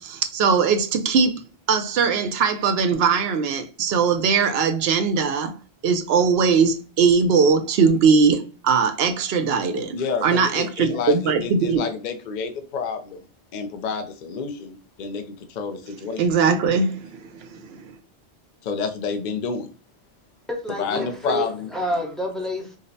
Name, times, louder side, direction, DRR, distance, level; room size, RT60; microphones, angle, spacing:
voice 1, 0.0-5.5 5.8-11.8 16.2-17.9, right 5 dB, 70° right, 0.8 m, -20 dB
voice 2, 9.9-11.1 11.4-13.2 13.5-15.2 15.5-16.2 18.6-19.7 20.8-21.5, left 5 dB, 55° left, 0.6 m, -29 dB
voice 3, 20.5-22.8, equal, ahead, 0.7 m, -28 dB
5.0 x 2.0 x 2.6 m
omnidirectional pair, 1.1 m